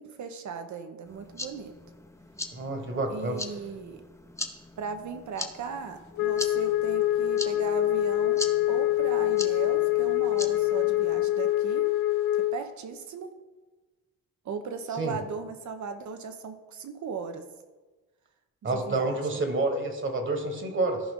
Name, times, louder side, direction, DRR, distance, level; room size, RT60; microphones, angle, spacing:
voice 1, 0.0-1.7 3.1-4.0 4.8-8.4 8.7-11.8 12.5-13.3 14.4-17.4 18.6-19.4, right 5 dB, 60° right, 8 dB, 1.0 m, -37 dB
sound 1, 1.1-11.3, left 2 dB, 10° left, 0.7 m, -41 dB
voice 2, 2.5-3.4 15.0-15.1 18.6-21.0, right 2 dB, 40° right, 5 dB, 1.6 m, -28 dB
Wind instrument woodwind instrument, 6.2-12.6, left 15 dB, 85° left, 0.8 m, -25 dB
14.5 x 5.1 x 3.8 m, 1.3 s
cardioid pair, 95°, 32 cm